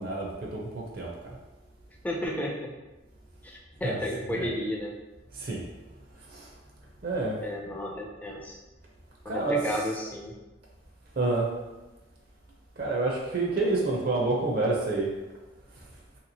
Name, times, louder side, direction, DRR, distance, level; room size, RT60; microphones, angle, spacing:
voice 1, 0.0-1.4 3.8-4.0 4.3-4.5 5.3-5.6 6.3-6.5 7.0-7.4 7.6-7.7 9.3-9.6 11.2-11.5 12.8-15.1, right 2 dB, 50° right, -2 dB, 0.5 m, -28 dB
voice 2, 2.0-2.7 3.4-4.9 7.4-8.6 9.2-10.3, left 1 dB, 10° left, -1 dB, 0.3 m, -33 dB
2.9 x 2.7 x 2.7 m, 1.1 s
head